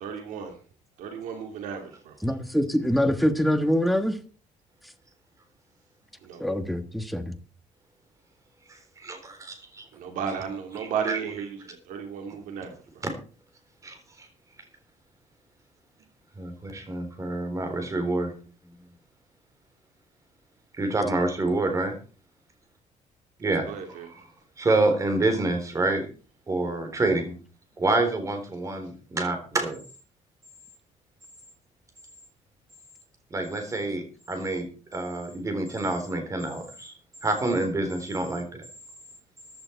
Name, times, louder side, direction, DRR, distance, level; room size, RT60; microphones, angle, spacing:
voice 1, 0.0-0.5 1.0-2.1 6.2-6.4 9.9-13.0 23.6-24.1, right 7 dB, 75° right, 2.7 m, -34 dB
voice 2, 2.2-4.2 6.4-7.3, equal, ahead, 1.4 m, -24 dB
voice 3, 8.7-9.9 10.8-11.2 13.0-13.1 13.8-14.3 16.4-18.3 20.8-22.0 23.4-24.2 24.6-26.1 26.5-27.3 27.8-29.8 33.3-34.6 34.9-36.9 37.2-38.6, right 2 dB, 25° right, 3.8 m, -27 dB
15.0 x 11.0 x 4.5 m
cardioid pair, 145°, 13 cm